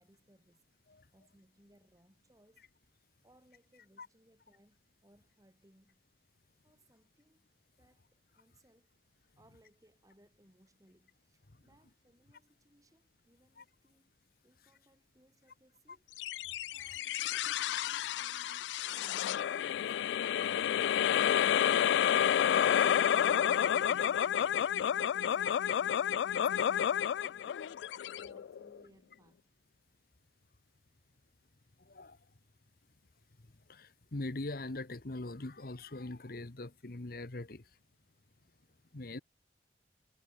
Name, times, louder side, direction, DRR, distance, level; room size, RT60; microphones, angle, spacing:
voice 1, 0.0-0.7 1.1-2.7 3.2-6.1 6.6-7.5 7.8-9.0 9.4-14.1 14.4-16.1 16.7-20.4 24.8-25.6 26.0-26.7 27.1-29.5, right 1 dB, 20° right, 3.3 m, -67 dB
sound 1, 16.2-28.8, left 9 dB, 85° left, 0.3 m, -30 dB
voice 2, 31.8-32.3 33.4-37.8 38.9-39.2, left 2 dB, 55° left, 1.1 m, -43 dB
head